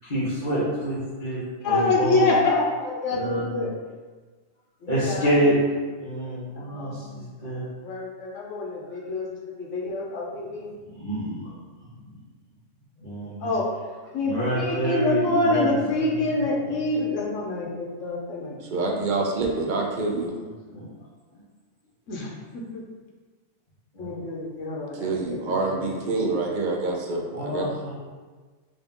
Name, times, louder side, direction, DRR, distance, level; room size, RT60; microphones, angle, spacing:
voice 1, 0.1-2.3 3.1-3.7 4.9-5.6 6.0-7.6 11.0-11.5 13.0-13.5 14.2-16.3 20.7-20.9 23.9-24.1 27.3-27.9, right 1 dB, 40° left, -13 dB, 1.3 m, -27 dB
voice 2, 1.6-3.7 4.8-5.5 6.7-7.0 7.8-9.3 9.6-10.7 13.4-13.6 14.1-18.9 22.1-22.3 22.7-22.8 24.0-25.1 25.4-26.3, left 2 dB, 90° left, -3 dB, 1.1 m, -26 dB
voice 3, 18.6-20.4 25.0-27.7, right 3 dB, 55° right, 0 dB, 0.6 m, -27 dB
3.7 x 2.7 x 3.5 m, 1.4 s
omnidirectional pair, 1.2 m